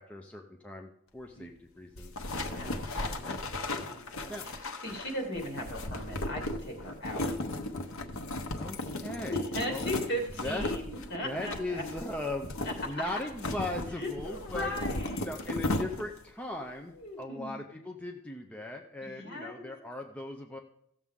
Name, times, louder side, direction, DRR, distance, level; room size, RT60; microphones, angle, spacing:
voice 1, 0.0-2.1 2.5-3.4 4.3-4.5 8.6-9.4 9.6-9.9 10.4-10.6 11.2-12.5 12.9-14.7 15.2-20.6, left 1 dB, 5° left, 1 dB, 0.6 m, -38 dB
sound 1, 2.0-16.3, left 2 dB, 85° left, 0.9 m, -36 dB
voice 2, 2.5-7.3 9.3-11.8 12.6-13.1 14.0-15.4 16.9-17.7 19.0-19.7, left 1 dB, 55° left, 0 dB, 2.7 m, -38 dB
16.0 x 7.1 x 3.7 m, 0.76 s
head